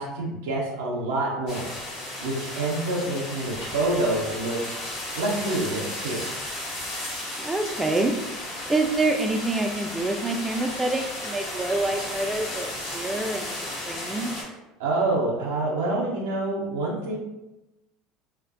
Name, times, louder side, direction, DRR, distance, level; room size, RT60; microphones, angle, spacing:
voice 1, 0.0-1.7 2.2-4.6 5.1-6.3 14.8-17.2, right 2 dB, 90° right, -3 dB, 0.5 m, -27 dB
sound 1, 1.5-14.4, left 1 dB, 60° left, 0.9 m, -34 dB
voice 2, 7.4-8.1 8.7-13.5 13.8-14.3, right 2 dB, 10° right, 5 dB, 0.3 m, -26 dB
2.5 x 2.1 x 2.4 m, 0.99 s
supercardioid pair, 100°, 0 cm